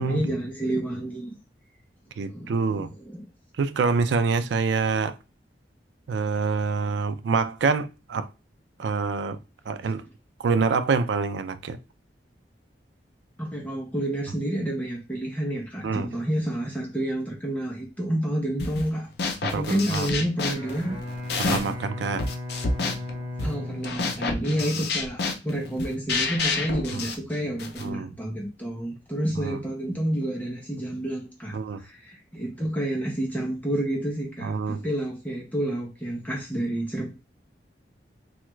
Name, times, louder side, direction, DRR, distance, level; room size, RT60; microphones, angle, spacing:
voice 1, 0.0-1.3 2.3-3.2 9.8-9.9 13.4-19.1 19.5-21.0 23.4-37.1, right 1 dB, 10° left, 0.7 m, -29 dB
voice 2, 2.2-2.9 3.6-5.2 6.1-8.3 8.8-9.4 9.7-10.0 10.4-11.8 15.8-16.1 19.4-20.1 21.4-22.3 26.9-27.0 27.8-28.1 29.4-29.6 31.5-31.8 34.4-34.9, right 4 dB, 75° right, 0.4 m, -26 dB
sound 1, 18.6-18.9 19.2-21.8 22.2-27.9, left 3 dB, 60° left, 0.5 m, -29 dB
Bowed string instrument, 20.5-24.8, left 2 dB, 30° right, 1.3 m, -36 dB
3.1 x 2.3 x 3.1 m
head